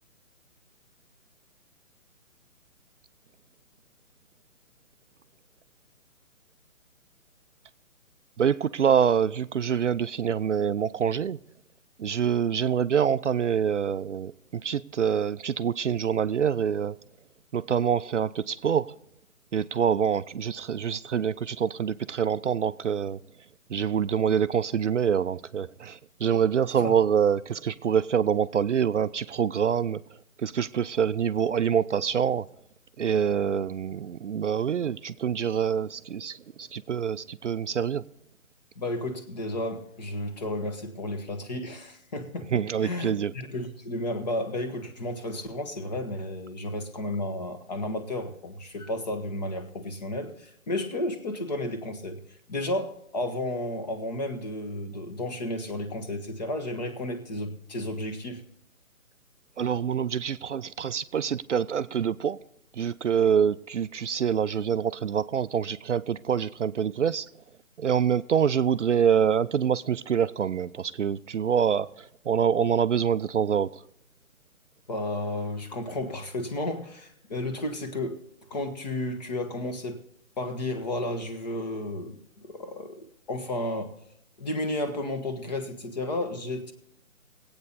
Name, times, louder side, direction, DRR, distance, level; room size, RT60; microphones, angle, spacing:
voice 1, 8.4-11.4 12.0-17.0 17.5-19.0 19.5-23.2 23.7-30.0 30.4-32.5 33.0-38.0 42.5-43.3 59.6-62.4 62.7-67.3 67.8-73.8, right 8 dB, 60° right, 0.5 m, -26 dB
voice 2, 38.8-52.2 52.5-58.4 74.9-78.2 78.5-80.0 80.4-83.9 84.4-86.7, left 1 dB, 30° left, 1.4 m, -32 dB
20.5 x 8.7 x 4.1 m
hypercardioid pair, 170°, 42 cm